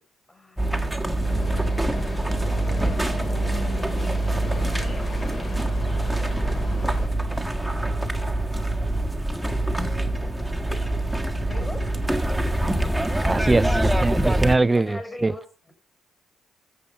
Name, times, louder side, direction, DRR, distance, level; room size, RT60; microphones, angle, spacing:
voice 1, 0.3-1.3 1.6-2.6 4.3-5.8 9.2-9.3 11.4-11.9 13.1-13.4 14.6-15.7, left 1 dB, 20° left, 4.5 m, -43 dB
sound 1, 0.6-14.6, right 1 dB, 5° right, 1.6 m, -24 dB
sound 2, 1.2-7.1, left 3 dB, 40° left, 3.8 m, -37 dB
voice 2, 13.2-15.3, right 2 dB, 20° right, 0.5 m, -22 dB
14.0 x 7.6 x 6.6 m
cardioid pair, 90°, 0 cm